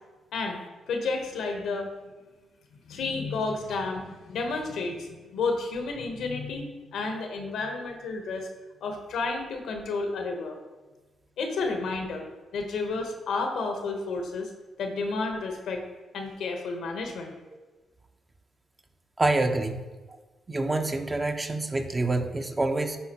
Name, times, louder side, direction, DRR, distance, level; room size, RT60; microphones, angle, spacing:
voice 1, 0.9-1.9 2.9-8.5 8.8-10.6 11.4-12.3 12.5-14.5 14.8-15.8 16.1-17.3, left 3 dB, 80° left, 4 dB, 1.0 m, -31 dB
voice 2, 19.2-19.8 20.1-20.2 20.5-23.0, right 2 dB, 30° right, 5 dB, 0.9 m, -26 dB
11.0 x 4.0 x 2.9 m, 1.2 s
supercardioid pair, 60°, 0 cm